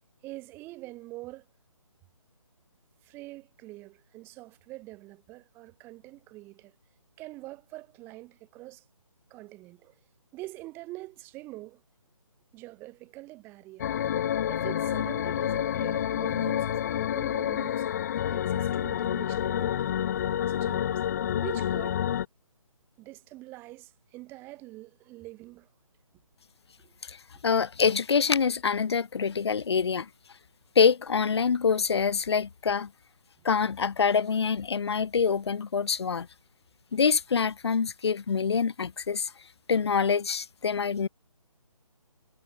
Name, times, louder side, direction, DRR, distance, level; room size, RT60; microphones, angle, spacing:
voice 1, 0.2-1.5 3.0-6.8 7.2-8.9 9.3-10.0 10.3-11.8 12.5-13.9 14.5-17.9 18.3-20.0 20.5-20.9 21.4-22.1 23.0-25.7 26.8-26.9, right 19 dB, 10° right, 5.1 m, -45 dB
sound 1, 13.8-22.2, left 10 dB, 30° left, 5.0 m, -28 dB
voice 2, 27.4-30.1 30.8-32.9 33.4-36.3 36.9-39.3 39.7-41.1, left 6 dB, 50° left, 7.3 m, -25 dB
hypercardioid pair, 165°, 18 cm